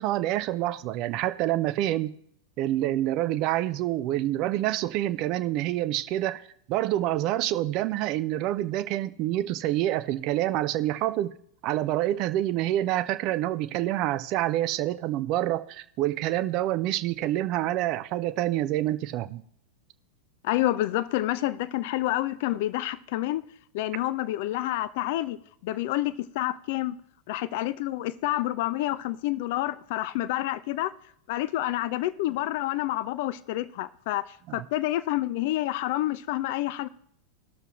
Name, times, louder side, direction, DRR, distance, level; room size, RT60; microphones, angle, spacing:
voice 1, 0.0-2.1 2.6-6.4 6.7-11.3 11.6-19.4 34.5-34.6, right 14 dB, 40° right, 0.4 m, -27 dB
voice 2, 20.4-23.4 23.7-25.4 25.6-27.0 27.3-30.9 31.3-34.2 34.5-36.9, left 15 dB, 50° left, 0.4 m, -28 dB
18.5 x 6.7 x 3.0 m
figure-of-eight pair, 90°, 0 cm